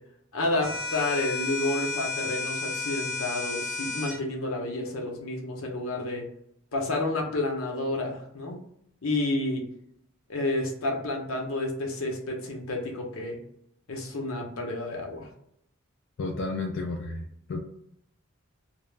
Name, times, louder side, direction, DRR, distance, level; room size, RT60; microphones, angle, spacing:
voice 1, 0.3-6.2 6.7-8.6 9.0-9.6 10.3-13.4 13.9-15.3, left 2 dB, 90° left, 1 dB, 0.7 m, -30 dB
sound 1, 0.6-4.2, left 4 dB, ahead, 0.5 m, -32 dB
voice 2, 16.2-17.6, left 3 dB, 60° left, 1 dB, 0.3 m, -32 dB
2.3 x 2.0 x 3.1 m, 0.73 s
head